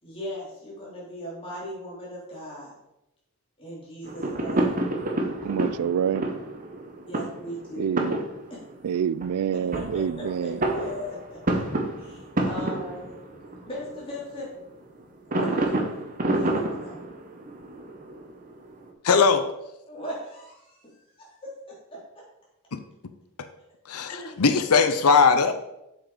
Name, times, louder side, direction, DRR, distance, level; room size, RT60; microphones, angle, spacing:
voice 1, 0.0-2.7 3.6-4.7 7.1-8.0 8.5-8.6 9.7-11.6 12.0-13.2 13.7-14.5 15.3-15.9 16.3-17.0 19.9-21.1 21.4-22.2 24.1-24.4, equal, 25° left, 3.5 m, -38 dB
sound 1, 4.0-14.4 15.3-18.9, right 1 dB, 35° right, 1.1 m, -29 dB
voice 2, 5.4-6.3 7.8-8.2 8.8-10.6, right 8 dB, 85° right, 0.3 m, -27 dB
voice 3, 19.0-19.4 22.7-22.8 23.9-25.5, left 5 dB, 90° left, 0.6 m, -19 dB
7.7 x 7.1 x 4.9 m
head